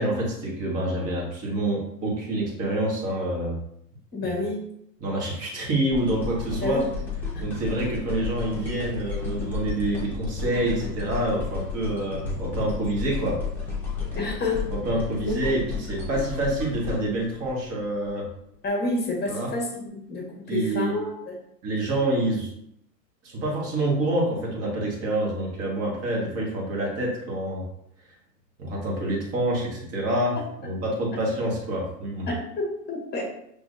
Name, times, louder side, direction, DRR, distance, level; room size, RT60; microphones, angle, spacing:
voice 1, 0.0-3.6 5.0-6.8 7.4-13.4 14.7-18.3 19.3-19.5 20.5-21.0 21.6-22.5 23.2-27.6 28.6-30.4 30.6-32.3, right 1 dB, 30° right, -3 dB, 1.7 m, -27 dB
voice 2, 4.1-4.7 6.6-6.9 7.3-7.4 14.1-14.7 15.2-15.3 18.6-21.4 32.3-33.2, left 2 dB, 20° left, -2 dB, 1.5 m, -29 dB
sound 1, 5.9-18.1 18.7-18.8, left 4 dB, 5° left, 1.2 m, -33 dB
6.0 x 3.4 x 2.6 m, 0.75 s
hypercardioid pair, 120°, 49 cm